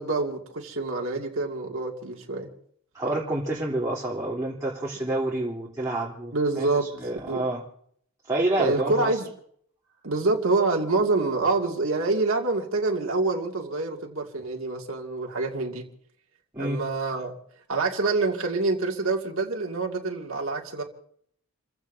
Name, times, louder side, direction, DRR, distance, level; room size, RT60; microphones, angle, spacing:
voice 1, 0.0-2.5 6.3-7.4 8.6-9.3 10.0-15.8 16.6-17.3 17.7-20.8, right 3 dB, 65° right, 2.3 m, -26 dB
voice 2, 2.9-6.3 6.6-6.7 7.0-7.6 8.3-9.1 16.5-16.8, right 2 dB, 15° right, 3.3 m, -28 dB
30.0 x 16.0 x 2.7 m
head